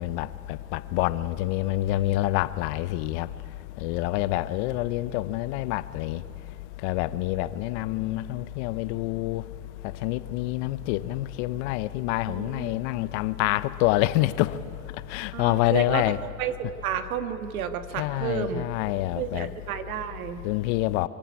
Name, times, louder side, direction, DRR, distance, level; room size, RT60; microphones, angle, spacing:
voice 1, 0.0-3.3 3.8-6.2 6.8-9.4 10.0-14.6 15.1-16.2 18.0-19.5 20.4-21.1, left 17 dB, 55° left, 0.8 m, -27 dB
voice 2, 12.3-12.7 15.3-16.0 16.4-16.6 16.8-18.7 19.2-20.4, right 9 dB, 80° right, 1.7 m, -31 dB
24.5 x 14.5 x 9.6 m
supercardioid pair, 135°, 42 cm